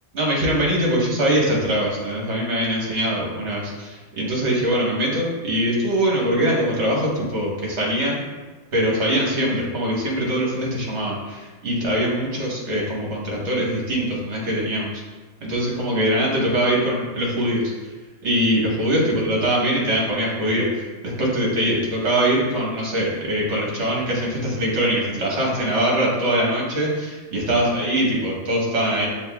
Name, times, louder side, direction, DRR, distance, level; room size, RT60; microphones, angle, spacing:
voice 1, 0.1-8.2 8.7-15.0 15.4-17.7 18.2-29.1, equal, 55° right, -3 dB, 1.4 m, -22 dB
7.3 x 2.9 x 2.3 m, 1.3 s
omnidirectional pair, 1.4 m